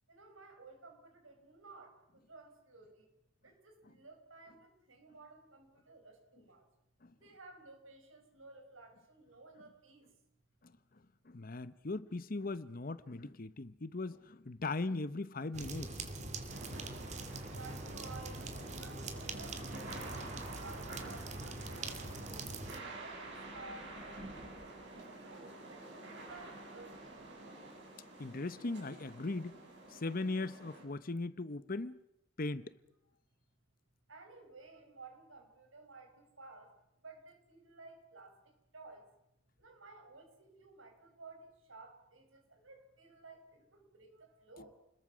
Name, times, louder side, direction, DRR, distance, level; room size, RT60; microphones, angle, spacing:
voice 1, 0.1-3.1 3.4-6.6 7.2-10.1 17.5-18.5 18.8-19.1 19.3-22.4 23.0-24.8 25.2-27.1 34.1-36.7 37.0-38.4 38.7-39.1 39.6-44.7, right 3 dB, 90° right, 6.0 m, -55 dB
voice 2, 11.3-16.0 16.3-16.4 22.8-22.9 28.2-29.5 29.9-32.0 32.4-32.7 44.6-44.7, left 3 dB, 45° left, 0.9 m, -39 dB
sound 1, 15.5-22.8, right 2 dB, 35° right, 2.7 m, -43 dB
sound 2, 16.5-30.8, right 2 dB, 60° right, 7.4 m, -49 dB
29.5 x 21.5 x 6.2 m
head